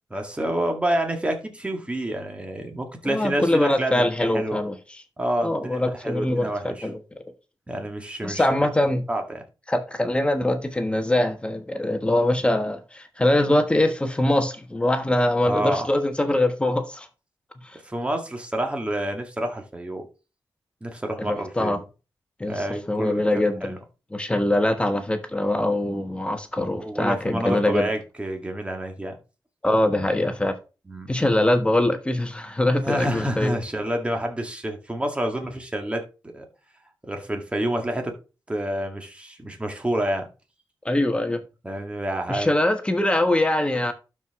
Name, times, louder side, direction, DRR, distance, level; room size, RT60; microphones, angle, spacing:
voice 1, 0.1-4.6 5.2-6.9 7.7-8.5 9.1-9.4 15.4-15.9 17.8-20.1 20.8-21.8 22.4-23.8 26.8-29.2 30.9-31.1 32.8-36.5 37.1-38.2 38.5-40.3 41.6-42.5, right 1 dB, 15° right, 2.0 m, -28 dB
voice 2, 3.0-4.7 5.4-7.0 8.2-9.1 9.7-17.1 17.6-17.8 21.3-21.8 22.4-23.8 24.1-27.9 29.6-30.6 31.1-33.6 40.8-41.4 42.3-43.9, left 1 dB, 15° left, 1.3 m, -23 dB
12.0 x 4.8 x 3.7 m
wide cardioid pair, 125°, 7 cm